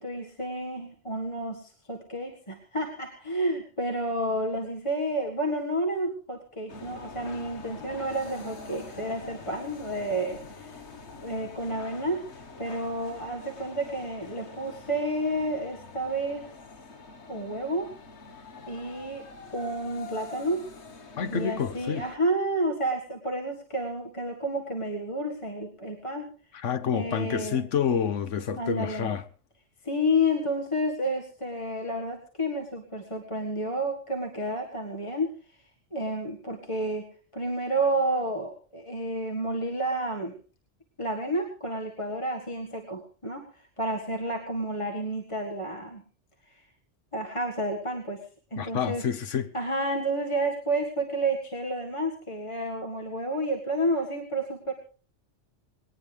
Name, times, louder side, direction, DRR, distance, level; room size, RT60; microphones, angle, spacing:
voice 1, 0.0-10.8 11.2-12.3 12.6-16.5 17.3-17.9 18.7-19.2 19.5-20.7 21.3-26.3 26.9-27.7 28.6-29.1 29.8-35.6 35.9-37.1 37.3-40.3 41.0-46.0 46.5-46.6 47.1-49.0 49.5-54.7, right 1 dB, 25° left, 1.9 m, -30 dB
sound 1, 6.7-22.2, left 4 dB, 65° left, 1.8 m, -45 dB
voice 2, 21.2-22.0 26.5-29.2 48.6-49.5, left 7 dB, 80° left, 1.3 m, -28 dB
20.5 x 18.5 x 3.4 m
omnidirectional pair, 1.2 m